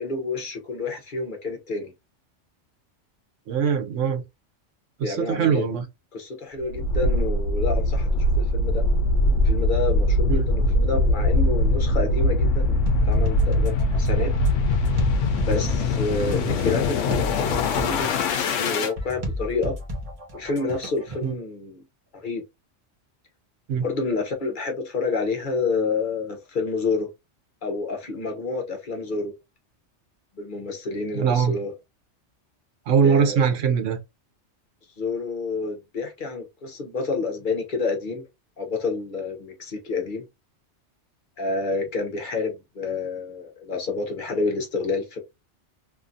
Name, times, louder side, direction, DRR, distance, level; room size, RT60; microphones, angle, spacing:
voice 1, 0.0-1.9 5.0-5.6 6.1-8.1 8.4-8.8 9.4-14.3 15.4-19.7 20.3-21.8 22.1-22.4 23.8-27.1 27.6-29.3 30.4-31.7 33.0-33.4 35.0-38.2 38.6-40.2 41.4-45.2, left 3 dB, 50° left, 0.9 m, -29 dB
voice 2, 3.5-4.2 5.0-5.8 10.3-10.4 21.2-21.4 23.7-23.8 31.1-31.6 32.9-34.0, right 6 dB, 90° right, 1.1 m, -22 dB
sound 1, 6.7-18.9, left 2 dB, 85° left, 1.0 m, -22 dB
sound 2, 12.9-21.3, equal, 35° right, 0.8 m, -33 dB
2.8 x 2.5 x 2.5 m
omnidirectional pair, 1.2 m